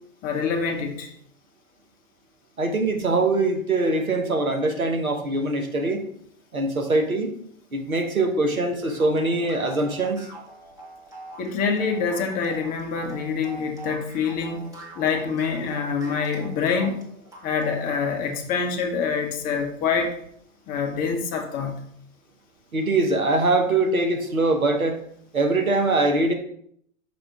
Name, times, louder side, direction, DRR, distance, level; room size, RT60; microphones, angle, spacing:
voice 1, 0.2-1.1 11.4-17.0 17.4-20.2 20.7-21.9, left 5 dB, 20° left, 4 dB, 0.7 m, -26 dB
voice 2, 2.6-6.1 6.5-7.3 7.7-10.3 22.7-25.0 25.3-26.3, right 2 dB, 85° right, 5 dB, 1.2 m, -23 dB
sound 1, 8.8-18.1, right 1 dB, 10° right, 1.2 m, -44 dB
5.8 x 5.0 x 3.5 m, 0.67 s
figure-of-eight pair, 110°, 41 cm